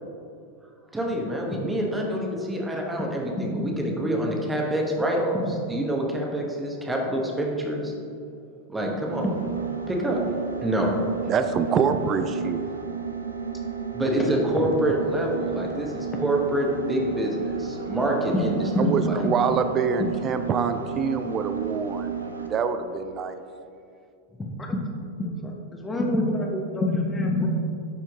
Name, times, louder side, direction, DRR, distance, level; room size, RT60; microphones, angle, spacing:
voice 1, 0.9-5.4 5.7-7.9 8.7-9.2 9.9-10.2 10.6-10.9 13.9-18.6 19.0-19.2, right 1 dB, 10° right, -1 dB, 1.1 m, -26 dB
sound 1, 9.1-22.6, right 6 dB, 75° right, 0.5 m, -32 dB
voice 2, 11.3-12.6 18.8-23.4, right 6 dB, 30° right, 9 dB, 0.4 m, -26 dB
voice 3, 24.4-24.8 25.2-27.5, left 1 dB, 15° left, 1 dB, 1.0 m, -26 dB
10.0 x 4.5 x 3.6 m, 2.5 s
figure-of-eight pair, 90°, 0 cm